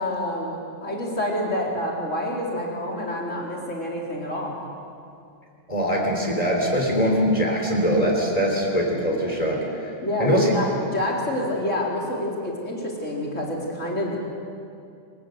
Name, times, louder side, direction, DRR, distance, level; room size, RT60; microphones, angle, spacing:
voice 1, 0.0-4.6 10.0-10.7 10.9-14.2, left 1 dB, 90° left, -2 dB, 4.3 m, -27 dB
voice 2, 5.7-9.9 10.2-10.5, equal, 30° left, -1 dB, 3.8 m, -22 dB
24.5 x 20.0 x 7.9 m, 2.5 s
omnidirectional pair, 1.2 m